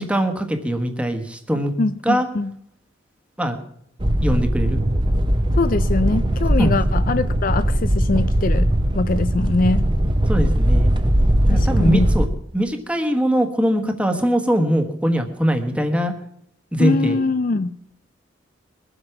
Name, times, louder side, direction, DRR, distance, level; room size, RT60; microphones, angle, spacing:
voice 1, 0.0-1.8 2.0-2.3 3.4-3.6 4.2-4.8 6.6-6.7 10.3-10.9 11.5-12.3 12.5-16.1 16.7-17.2, equal, 5° right, 1.4 m, -21 dB
voice 2, 1.8-2.5 5.6-9.8 11.5-12.1 16.8-17.8, left 3 dB, 45° left, 0.4 m, -22 dB
sound 1, 4.0-12.3, right 1 dB, 25° right, 0.8 m, -19 dB
22.0 x 8.0 x 5.9 m
head